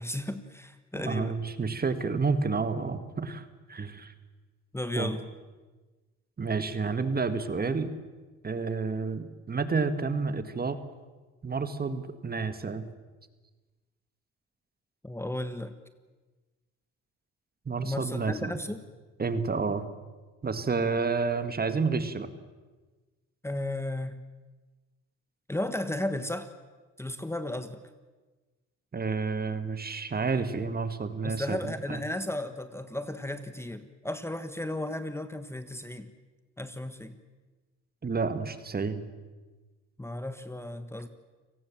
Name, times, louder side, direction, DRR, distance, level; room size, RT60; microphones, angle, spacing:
voice 1, 0.0-1.3 4.7-5.3 15.0-15.7 17.8-18.8 23.4-24.2 25.5-26.5 27.0-27.8 31.2-36.1 36.6-37.1 40.0-41.1, left 1 dB, 10° left, 10 dB, 1.4 m, -34 dB
voice 2, 0.9-4.1 5.0-5.2 6.4-7.9 8.4-10.8 11.4-12.9 17.7-18.5 19.2-19.8 20.4-22.3 28.9-32.0 38.0-39.0, right 4 dB, 30° right, 11 dB, 1.9 m, -30 dB
30.0 x 18.5 x 7.4 m, 1.3 s
cardioid pair, 90°, 30 cm